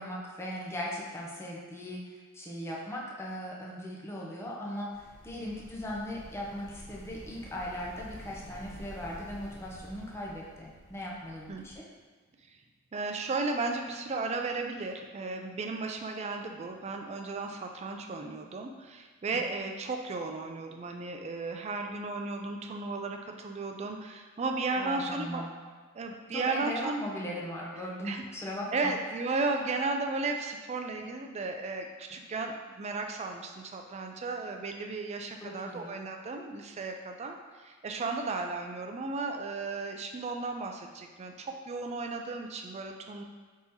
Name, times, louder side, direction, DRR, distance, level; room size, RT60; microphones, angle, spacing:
voice 1, 0.0-11.8 24.7-25.5 26.3-28.9 35.4-35.9, equal, 10° left, -4 dB, 0.6 m, -38 dB
sound 1, 4.9-11.8, equal, 65° left, 1.0 m, -49 dB
voice 2, 12.9-25.4 25.9-27.1 28.0-28.2 28.7-43.2, right 3 dB, 30° right, 4 dB, 0.3 m, -34 dB
3.6 x 2.9 x 4.1 m, 1.4 s
head